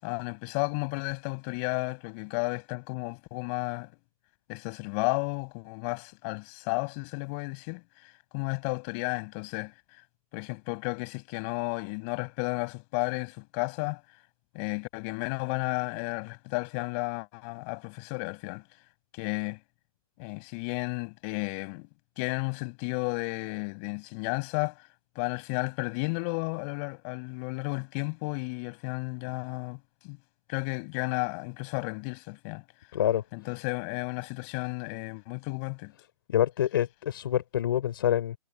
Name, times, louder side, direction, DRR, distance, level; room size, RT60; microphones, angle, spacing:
voice 1, 0.0-3.9 4.5-7.8 8.3-9.7 10.3-14.0 14.5-18.6 19.1-19.6 20.2-21.9 22.2-24.8 25.1-29.8 30.0-30.2 30.5-32.6 33.3-35.9, left 33 dB, 20° left, 8.0 m, -33 dB
voice 2, 32.9-33.2 36.3-38.3, left 11 dB, 35° left, 4.5 m, -26 dB
hypercardioid pair, 170°, 19 cm